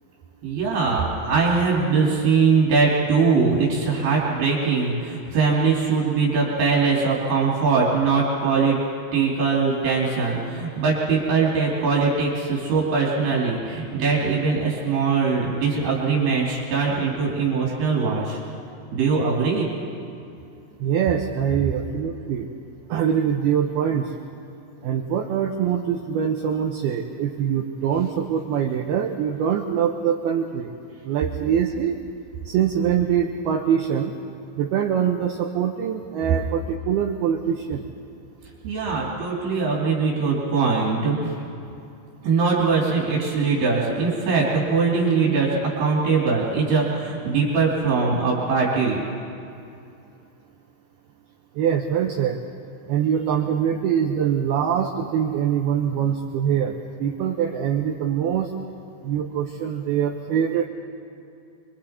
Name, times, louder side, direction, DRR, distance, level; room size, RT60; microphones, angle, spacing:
voice 1, 0.4-8.8 9.1-18.4 18.9-19.7 38.6-41.3 42.2-49.0, right 4 dB, 55° right, -4 dB, 4.3 m, -21 dB
voice 2, 20.8-22.5 22.9-24.1 24.8-30.7 31.1-32.0 32.5-34.1 34.6-37.9 51.6-52.4 52.9-58.5 59.0-60.7, right 8 dB, 90° right, 3 dB, 2.2 m, -23 dB
26.0 x 24.5 x 4.4 m, 2.6 s
omnidirectional pair, 5.8 m